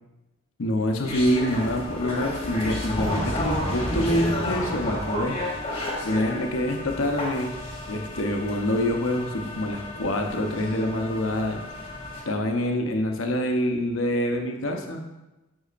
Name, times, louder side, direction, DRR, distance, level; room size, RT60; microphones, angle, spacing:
voice 1, 0.6-5.4 6.0-7.5 7.9-11.6 12.3-15.0, left 1 dB, 75° left, 4 dB, 0.8 m, -26 dB
sound 1, 1.0-12.2, left 1 dB, 30° left, 1.4 m, -31 dB
8.1 x 5.5 x 2.5 m, 1.0 s
head